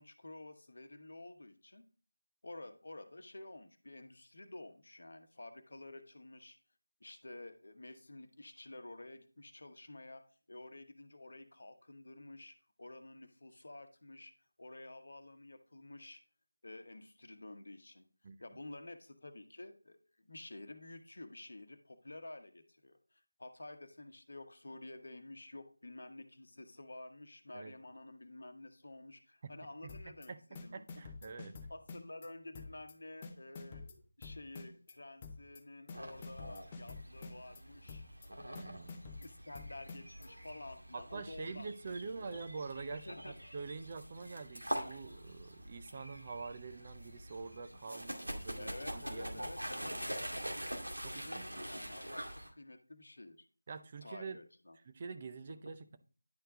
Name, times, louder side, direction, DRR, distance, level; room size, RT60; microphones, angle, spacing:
voice 1, 0.0-1.8 2.4-6.6 7.0-14.3 14.6-16.2 16.6-18.0 18.4-30.3 30.6-30.8 31.2-31.4 31.7-38.0 39.2-41.7 42.0-42.4 42.9-43.3 48.6-50.3 51.0-53.4 54.0-54.8, left 2 dB, 50° left, 8 dB, 1.1 m, -51 dB
sound 1, 29.9-30.3 30.5-32.3 32.5-32.9 33.2-34.9 35.2-35.6 35.9-37.6 37.9-38.3 38.5-40.3, left 4 dB, 15° left, 0.6 m, -48 dB
voice 2, 30.7-31.6 38.5-39.0 40.9-49.9 51.0-51.5 53.7-54.4 54.8-56.0, right 4 dB, 25° right, 9 dB, 0.6 m, -46 dB
sound 2, 35.9-52.5, equal, 75° right, 2.2 m, -45 dB
10.5 x 4.5 x 3.7 m, 0.40 s
figure-of-eight pair, 165°, 0 cm